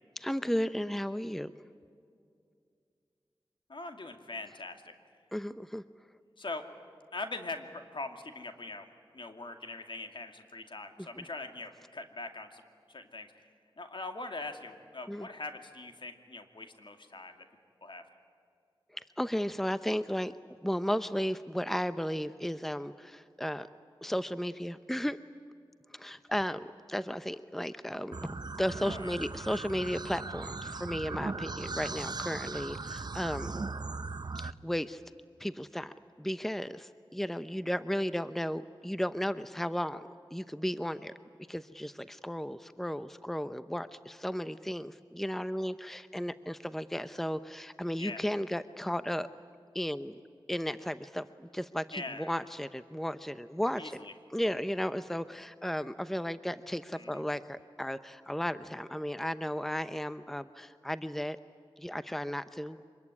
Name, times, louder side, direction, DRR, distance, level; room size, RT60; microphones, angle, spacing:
voice 1, 0.2-1.5 5.3-5.8 11.2-11.3 15.1-15.3 18.9-23.7 24.0-25.2 25.9-33.6 34.4-35.0 35.4-41.1 41.5-49.3 49.7-50.2 50.5-54.0 54.3-61.4 61.8-62.8, equal, 5° left, 13 dB, 0.7 m, -34 dB
voice 2, 3.7-4.9 6.4-6.6 7.1-8.9 9.1-12.6 12.9-13.3 13.8-17.4 17.8-18.0 28.9-29.2 48.0-48.2 51.9-52.4 53.8-54.1 56.9-57.2, left 3 dB, 60° left, 6 dB, 2.4 m, -42 dB
sound 1, 28.1-34.5, right 3 dB, 50° right, 0.8 m, -38 dB
25.5 x 21.5 x 9.8 m, 2.3 s
cardioid pair, 50°, 9 cm